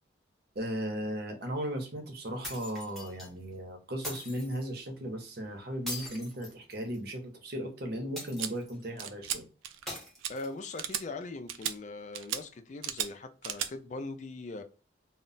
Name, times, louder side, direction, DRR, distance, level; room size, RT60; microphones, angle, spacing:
voice 1, 0.5-9.5, equal, 55° right, 0.7 m, -36 dB
sound 1, 2.4-3.3 4.0-4.6 5.9-7.1 8.2-8.8 9.9-10.8, left 1 dB, ahead, 0.8 m, -42 dB
sound 2, 8.4-8.5 9.0-9.4 9.6-9.9 10.2-10.3 10.8-11.0 11.5-11.7 12.2-12.4 12.8-13.1 13.4-13.7, right 9 dB, 85° right, 0.3 m, -34 dB
voice 2, 10.3-14.6, left 3 dB, 40° left, 0.3 m, -41 dB
2.1 x 2.0 x 3.8 m
head